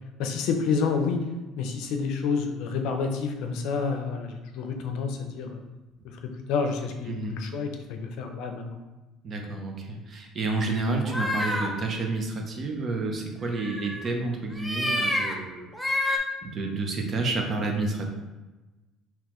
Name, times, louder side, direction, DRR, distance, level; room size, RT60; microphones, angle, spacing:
voice 1, 0.2-1.2 1.6-5.6 6.0-8.8, left 5 dB, 70° left, 5 dB, 0.5 m, -29 dB
voice 2, 7.1-7.5 9.2-15.7 16.4-18.1, right 3 dB, 35° right, 2 dB, 0.7 m, -30 dB
sound 1, 11.0-11.7 13.5-14.1 14.5-15.3 15.7-16.2, left 1 dB, ahead, 0.5 m, -28 dB
4.0 x 2.9 x 3.0 m, 1.1 s
cardioid pair, 135°, 0 cm